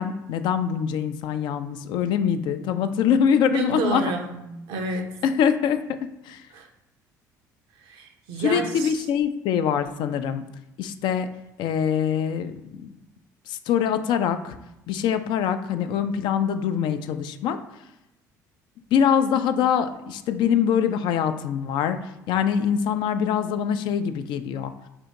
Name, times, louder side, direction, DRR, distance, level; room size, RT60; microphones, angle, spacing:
voice 1, 0.0-4.0 5.2-5.8 6.3-6.4 8.4-10.4 10.8-11.3 11.6-12.9 13.5-14.6 14.9-17.6 18.9-22.0 22.3-24.7, left 8 dB, 55° left, 9 dB, 0.3 m, -24 dB
voice 2, 3.5-5.2 6.5-6.7 7.8-9.0, right 3 dB, 65° right, 4 dB, 0.6 m, -30 dB
3.4 x 2.8 x 3.9 m, 0.92 s
hypercardioid pair, 55°, 9 cm